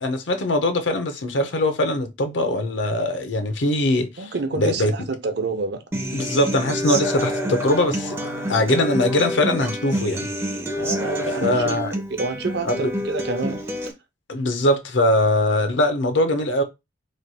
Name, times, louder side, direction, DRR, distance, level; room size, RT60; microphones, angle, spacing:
voice 1, 0.0-4.9 6.1-8.2 8.5-10.3 11.4-11.9 12.7-12.9 14.3-16.6, left 1 dB, 70° left, 0.7 m, -21 dB
voice 2, 4.2-5.8 10.7-13.6, right 3 dB, 60° right, 0.7 m, -28 dB
Human voice / Acoustic guitar, 5.9-13.9, equal, 15° right, 0.5 m, -28 dB
3.2 x 2.2 x 4.1 m
head